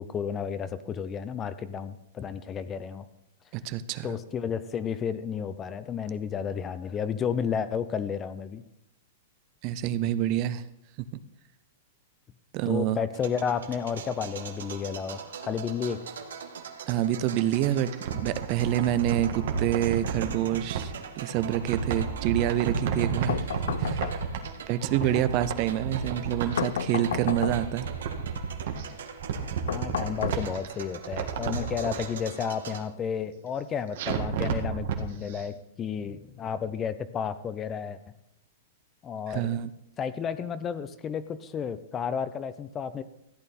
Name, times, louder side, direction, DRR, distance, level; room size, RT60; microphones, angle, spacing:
voice 1, 0.0-3.0 4.0-8.6 12.7-16.0 25.0-25.1 29.6-38.0 39.0-39.6 40.0-43.0, left 7 dB, 20° left, 14 dB, 0.6 m, -32 dB
voice 2, 3.5-4.1 9.6-10.6 12.5-13.0 16.9-17.9 18.2-23.5 23.8-24.2 24.7-27.9 39.3-39.7, right 12 dB, 40° right, 14 dB, 0.6 m, -27 dB
sound 1, 13.1-32.8, right 6 dB, 85° right, 1.4 m, -42 dB
sound 2, 17.7-20.9 21.3-24.6 24.8-26.7 27.0-28.8 29.2-30.7 31.0-32.0 34.0-35.0 35.3-35.4, right 6 dB, 65° right, 1.7 m, -31 dB
sound 3, 23.3-24.6 26.6-27.9 29.7-30.9, left 8 dB, 80° left, 0.6 m, -32 dB
14.5 x 8.8 x 4.2 m, 0.82 s
hypercardioid pair, 140°, 0 cm